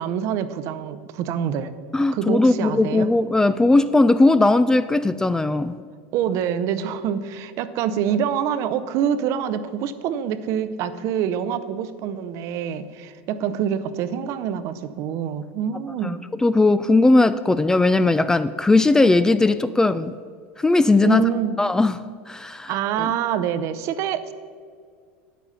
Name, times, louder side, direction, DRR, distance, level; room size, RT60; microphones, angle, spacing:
voice 1, 0.0-1.8 2.1-3.1 6.1-16.2 21.0-21.5 22.7-24.3, right 9 dB, 55° right, 12 dB, 0.7 m, -26 dB
voice 2, 1.9-5.8 16.0-20.1 20.6-21.3 21.6-23.1, left 2 dB, 10° left, 13 dB, 0.3 m, -18 dB
9.3 x 8.3 x 5.5 m, 2.1 s
hypercardioid pair, 95°, 6 cm